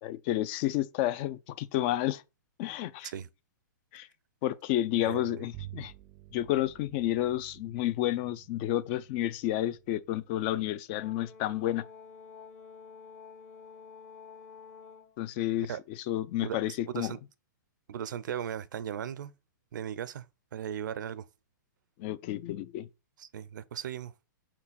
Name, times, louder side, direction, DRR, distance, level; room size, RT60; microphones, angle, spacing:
voice 1, 0.0-2.2 2.6-3.1 3.9-4.1 4.4-5.9 6.3-11.8 15.2-17.1 22.0-22.9, left 14 dB, 35° left, 0.4 m, -31 dB
voice 2, 5.0-5.5 15.7-15.8 16.4-16.6 16.9-17.2 17.9-19.3 19.7-20.3 20.5-21.3 23.2-24.1, right 9 dB, 70° right, 0.6 m, -37 dB
Bowed string instrument, 5.5-11.2, right 14 dB, 25° right, 0.5 m, -51 dB
Brass instrument, 11.0-15.2, left 6 dB, 50° left, 1.8 m, -50 dB
5.1 x 4.5 x 4.1 m
hypercardioid pair, 150°, 11 cm